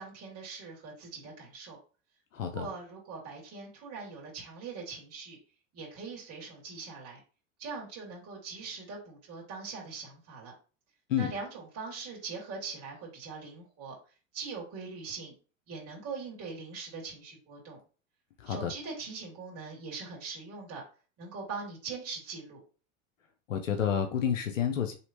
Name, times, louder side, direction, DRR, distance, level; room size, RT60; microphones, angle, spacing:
voice 1, 0.0-1.8 2.4-5.4 5.7-7.2 7.6-10.5 11.2-13.9 14.3-15.3 15.7-17.8 18.5-20.8 21.2-22.6, right 4 dB, 40° right, -4 dB, 2.3 m, -42 dB
voice 2, 2.3-2.7 11.1-11.3 18.4-18.7 23.5-24.9, left 8 dB, 85° left, 6 dB, 0.7 m, -29 dB
4.2 x 3.2 x 2.9 m, 0.37 s
hypercardioid pair, 85°, 38 cm